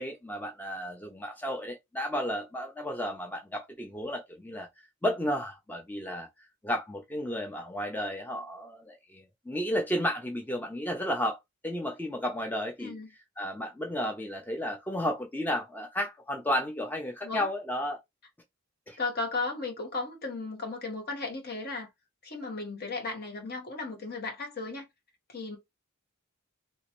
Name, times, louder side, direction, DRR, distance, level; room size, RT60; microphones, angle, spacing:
voice 1, 0.0-4.7 5.0-6.3 6.6-11.4 11.6-12.9 13.4-18.0 18.9-19.0, equal, 10° left, 0.5 m, -33 dB
voice 2, 19.0-21.9 22.2-24.9 25.3-25.6, left 3 dB, 50° left, 1.3 m, -35 dB
3.2 x 3.1 x 3.0 m
head